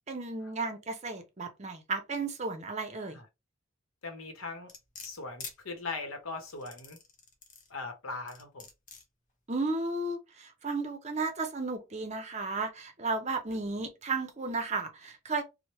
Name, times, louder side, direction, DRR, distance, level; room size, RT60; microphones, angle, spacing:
voice 1, 0.1-3.2 9.5-15.4, right 3 dB, 35° right, 0.6 m, -34 dB
voice 2, 4.0-4.7 5.0-7.0 7.7-8.7, left 3 dB, 85° left, 0.8 m, -40 dB
sound 1, 4.7-5.6 6.5-7.7 8.3-9.0 9.7-9.8, left 5 dB, 40° left, 0.7 m, -46 dB
3.1 x 2.1 x 3.0 m
head